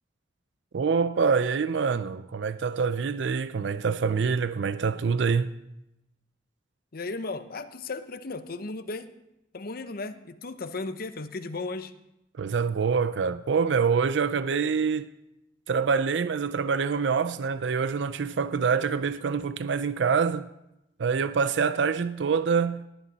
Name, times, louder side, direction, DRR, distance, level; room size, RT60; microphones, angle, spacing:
voice 1, 0.7-5.5 12.4-15.1 15.7-20.5 21.0-22.8, right 5 dB, 70° right, 0.4 m, -25 dB
voice 2, 6.9-9.1 9.5-11.9, left 3 dB, 55° left, 0.8 m, -35 dB
19.0 x 10.0 x 4.1 m
head